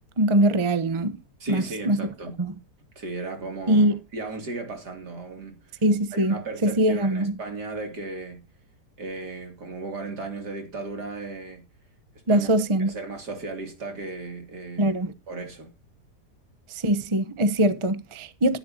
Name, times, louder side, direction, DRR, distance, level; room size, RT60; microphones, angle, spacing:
voice 1, 0.2-1.1 1.5-2.0 2.4-2.5 3.7-3.9 5.8-6.3 6.6-7.3 12.3-12.9 14.8-15.1 16.7-18.6, right 1 dB, 25° right, 0.8 m, -22 dB
voice 2, 1.4-2.4 3.0-5.8 6.1-8.4 9.0-11.7 12.3-12.5 12.9-15.0 15.3-15.7, right 3 dB, 75° right, 3.4 m, -36 dB
14.0 x 11.0 x 2.9 m
omnidirectional pair, 1.8 m